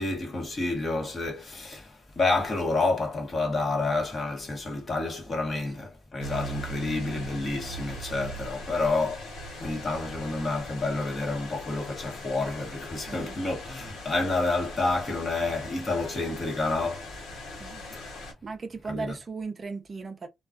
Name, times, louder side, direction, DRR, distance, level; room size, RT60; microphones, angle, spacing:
voice 1, 0.0-9.3 9.6-17.0 17.9-18.1 18.9-19.1, left 3 dB, 35° left, 1.0 m, -29 dB
sound 1, 6.2-18.3, equal, 80° left, 1.2 m, -41 dB
voice 2, 13.1-13.4 17.5-17.8 18.4-20.3, right 4 dB, 35° right, 0.4 m, -37 dB
2.3 x 2.2 x 2.4 m
cardioid pair, 90°, 0 cm